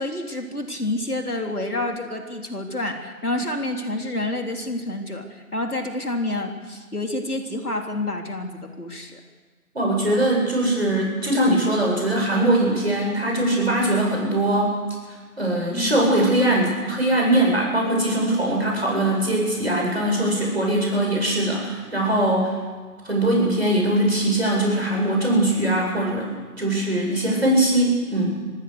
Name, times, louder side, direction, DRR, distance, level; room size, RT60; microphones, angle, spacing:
voice 1, 0.0-9.2 15.7-16.0 22.2-22.3, left 2 dB, 70° left, 3 dB, 3.7 m, -28 dB
voice 2, 9.7-14.7 15.4-22.5 23.0-28.4, right 1 dB, 40° right, -1 dB, 7.6 m, -21 dB
26.0 x 20.0 x 6.8 m, 1.4 s
figure-of-eight pair, 180°, 46 cm